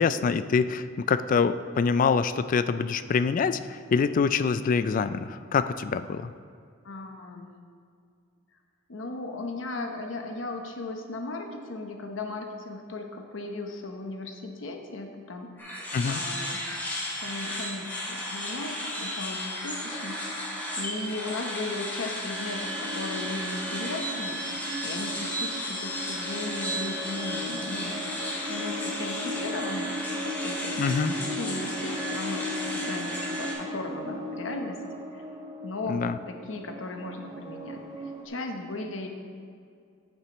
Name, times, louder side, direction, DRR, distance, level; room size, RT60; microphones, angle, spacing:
voice 1, 0.0-3.6 3.9-6.2 15.9-16.2 30.8-31.1 35.9-36.2, left 5 dB, 45° left, 13 dB, 0.3 m, -25 dB
voice 2, 6.8-7.5 8.9-16.6 17.2-24.4 24.8-28.0 28.5-29.9 30.2-35.2 35.6-39.1, left 2 dB, 75° left, 4 dB, 0.9 m, -37 dB
sound 1, 15.6-33.5, equal, 10° left, 2.0 m, -34 dB
sound 2, 19.9-21.8 22.2-38.3, equal, 20° right, 1.0 m, -37 dB
9.8 x 8.7 x 3.0 m, 2.3 s
head